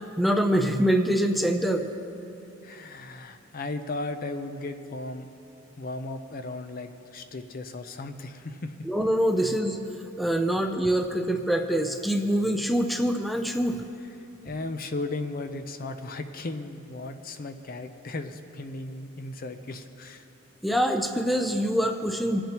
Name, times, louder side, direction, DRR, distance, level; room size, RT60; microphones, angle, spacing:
voice 1, 0.2-1.9 8.9-9.8 10.2-13.8 20.6-22.4, equal, ahead, 4 dB, 0.5 m, -24 dB
voice 2, 2.6-5.3 5.8-8.8 14.2-20.3, left 2 dB, 45° left, 8 dB, 0.6 m, -36 dB
26.5 x 8.9 x 3.0 m, 2.9 s
head